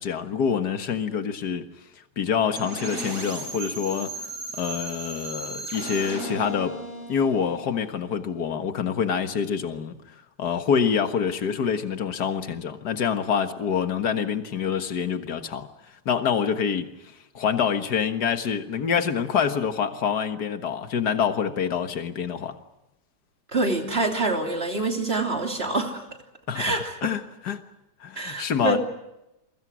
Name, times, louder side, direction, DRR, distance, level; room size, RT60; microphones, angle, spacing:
voice 1, 0.0-1.7 2.2-4.1 4.6-6.8 7.1-10.0 10.4-15.7 16.1-16.9 17.3-22.6 26.5-27.6 28.0-28.8, left 7 dB, 70° left, 2.0 m, -26 dB
sound 1, 2.6-8.4, right 2 dB, 65° right, 8.8 m, -36 dB
voice 2, 23.5-26.0 26.5-27.1 28.2-28.8, right 2 dB, 35° right, 3.3 m, -26 dB
29.5 x 23.0 x 6.3 m
omnidirectional pair, 1.8 m